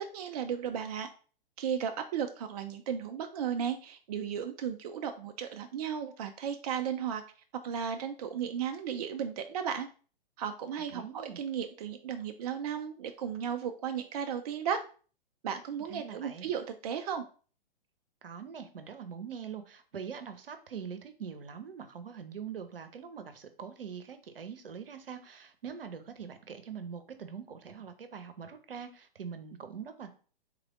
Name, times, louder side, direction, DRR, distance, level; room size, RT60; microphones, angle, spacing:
voice 1, 0.1-1.1 1.6-7.2 7.6-9.9 10.4-14.8 15.4-17.2, right 8 dB, 45° right, 7 dB, 0.4 m, -35 dB
voice 2, 10.9-11.4 15.9-16.5 18.2-30.1, right 7 dB, 70° right, 9 dB, 0.8 m, -43 dB
3.7 x 3.3 x 3.6 m, 0.40 s
figure-of-eight pair, 115°, 29 cm